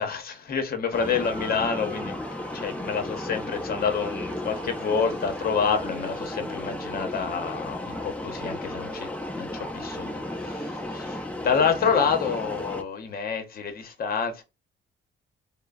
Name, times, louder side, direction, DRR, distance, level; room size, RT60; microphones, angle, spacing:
voice 1, 0.0-2.2 2.5-9.1 9.3-14.4, left 6 dB, 50° left, 0.8 m, -28 dB
sound 1, 0.9-12.8, left 1 dB, 5° left, 0.5 m, -34 dB
sound 2, 1.1-6.1, right 3 dB, 20° right, 0.9 m, -48 dB
3.1 x 2.0 x 2.2 m
cardioid pair, 90°, 20 cm